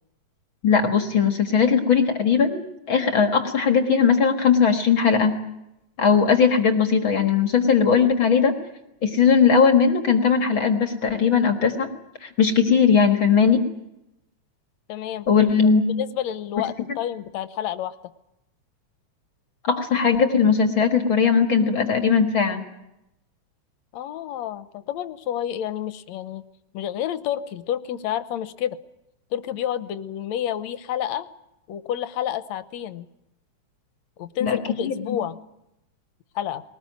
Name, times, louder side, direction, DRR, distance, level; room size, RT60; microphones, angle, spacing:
voice 1, 0.6-5.4 6.0-8.6 9.0-11.9 12.2-13.6 15.3-15.8 19.6-22.6 34.4-34.6 34.8-35.2, left 6 dB, 45° left, 6 dB, 2.1 m, -19 dB
voice 2, 14.9-15.3 16.0-18.0 23.9-26.4 26.7-28.8 29.3-31.3 31.7-33.1 34.2-35.4 36.4-36.6, left 10 dB, 70° left, 13 dB, 2.1 m, -29 dB
21.5 x 19.5 x 9.3 m, 0.88 s
omnidirectional pair, 3.4 m